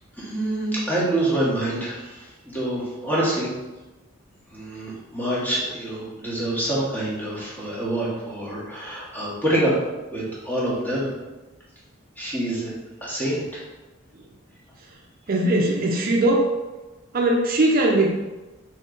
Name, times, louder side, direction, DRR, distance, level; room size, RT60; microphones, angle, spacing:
voice 1, 0.2-2.2 2.5-3.5 4.5-9.7 10.1-11.1 12.2-12.7 13.0-13.6, right 1 dB, 10° left, -7 dB, 1.3 m, -26 dB
voice 2, 15.3-16.5 17.1-18.1, right 1 dB, 45° right, 0 dB, 0.5 m, -20 dB
3.9 x 3.1 x 3.9 m, 1.1 s
head